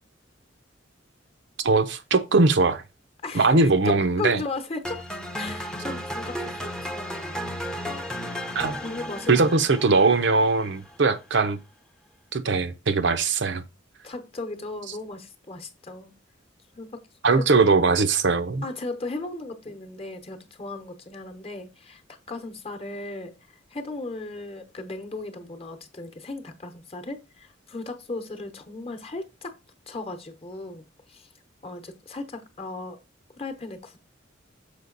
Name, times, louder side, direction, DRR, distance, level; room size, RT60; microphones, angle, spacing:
voice 1, 1.6-2.8 3.3-4.4 8.5-8.8 9.3-11.6 12.3-13.6 17.2-18.6, right 3 dB, 65° right, 0.7 m, -20 dB
voice 2, 3.2-3.5 3.8-5.0 5.3-7.4 8.8-9.5 14.0-16.1 16.8-17.0 17.4-17.6 18.6-29.6 29.9-31.3 31.6-33.0 33.4-34.0, left 2 dB, 30° left, 0.9 m, -36 dB
sound 1, 4.8-11.0, equal, 5° left, 0.7 m, -34 dB
6.7 x 5.0 x 3.9 m
head